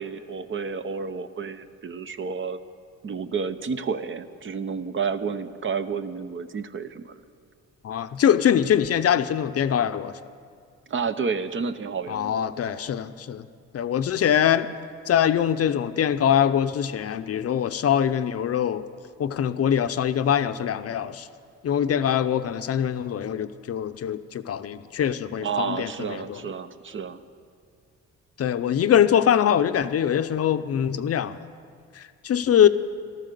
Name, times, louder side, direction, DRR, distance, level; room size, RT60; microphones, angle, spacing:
voice 1, 0.0-2.6 3.0-7.2 10.9-12.4 25.4-27.2, right 5 dB, 40° right, 11 dB, 0.7 m, -30 dB
voice 2, 7.8-10.2 12.1-13.4 13.7-14.7 15.1-18.8 19.2-21.3 21.6-26.4 28.4-31.4 32.0-32.7, left 9 dB, 50° left, 11 dB, 0.6 m, -23 dB
13.5 x 13.0 x 6.7 m, 2.2 s
cardioid pair, 100°, 30 cm